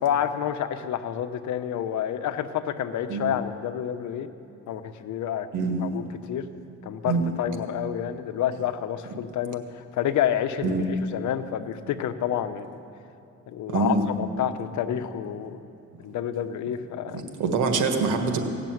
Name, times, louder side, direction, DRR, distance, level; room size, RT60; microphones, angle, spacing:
voice 1, 0.0-4.3 4.7-5.5 5.8-6.0 6.3-6.5 6.8-12.8 13.5-15.6 16.0-17.2, left 10 dB, 75° left, 10 dB, 0.8 m, -29 dB
voice 2, 13.7-14.0 17.1-18.4, right 4 dB, 90° right, 5 dB, 1.5 m, -25 dB
16.5 x 6.8 x 9.3 m, 2.6 s
cardioid pair, 90°, 30 cm